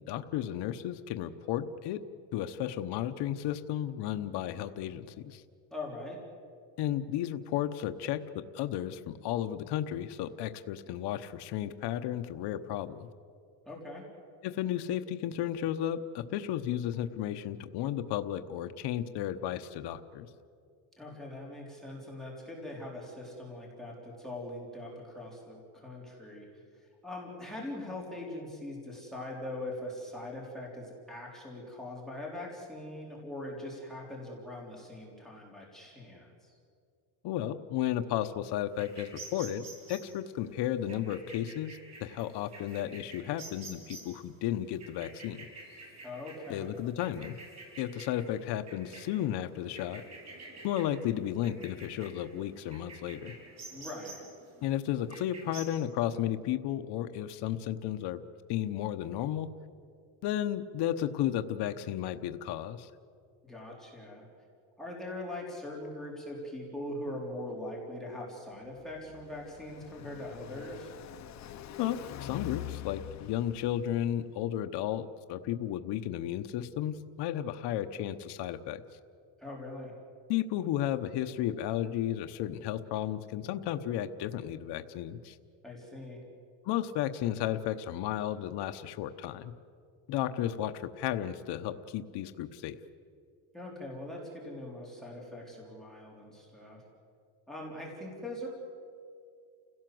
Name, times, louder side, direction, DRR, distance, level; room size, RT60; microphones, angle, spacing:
voice 1, 0.1-2.0 2.3-5.4 6.8-13.1 14.4-20.3 37.2-45.5 46.5-47.4 47.8-50.0 50.6-53.3 54.6-58.2 58.5-59.5 60.2-62.9 71.8-78.8 80.3-85.4 86.6-89.5 90.1-92.8, left 11 dB, 60° left, 7 dB, 1.0 m, -33 dB
voice 2, 5.7-6.2 13.7-14.0 21.0-26.5 27.0-36.6 46.0-46.7 53.7-54.2 63.4-64.2 64.8-70.9 79.4-79.9 85.6-86.2 93.5-96.8 97.5-98.5, left 1 dB, ahead, -2 dB, 3.9 m, -42 dB
sound 1, 38.7-55.6, right 3 dB, 35° right, 6.3 m, -50 dB
Car passing by, 68.6-74.2, left 11 dB, 35° left, 0.8 m, -44 dB
29.5 x 17.0 x 7.8 m, 2.3 s
cardioid pair, 155°, 46 cm